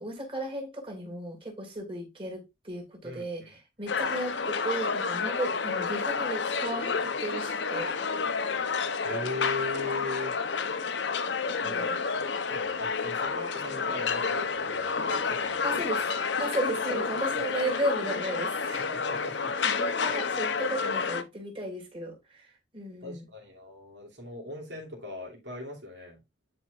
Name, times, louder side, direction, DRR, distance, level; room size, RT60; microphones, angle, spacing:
voice 1, 0.0-7.9 11.6-12.0 15.6-16.1 16.4-18.9 19.2-23.3, right 1 dB, 30° right, 2.7 m, -35 dB
voice 2, 3.0-3.5 9.0-10.3 11.6-11.9 12.5-16.0 18.7-19.5 20.1-20.2 23.0-26.2, left 2 dB, 75° right, 2.9 m, -39 dB
sound 1, 3.9-21.2, left 5 dB, 85° left, 0.8 m, -30 dB
10.5 x 4.6 x 2.5 m
head